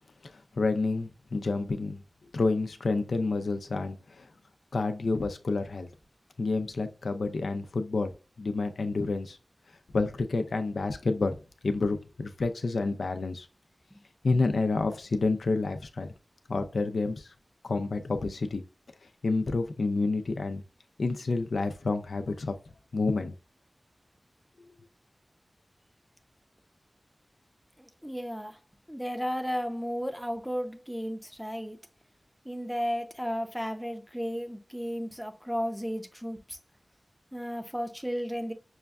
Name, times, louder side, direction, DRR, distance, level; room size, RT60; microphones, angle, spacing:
voice 1, 0.5-2.0 2.3-4.3 4.7-5.9 6.4-9.4 9.9-11.4 11.6-13.5 14.2-16.1 16.5-17.3 17.6-18.6 19.2-20.6 21.0-22.5 22.9-23.3, left 3 dB, 90° left, 0.5 m, -29 dB
voice 2, 28.0-28.5 28.9-31.8 32.5-36.6 37.3-38.5, equal, ahead, 0.7 m, -33 dB
6.2 x 2.3 x 2.4 m
wide cardioid pair, 55°, 0 cm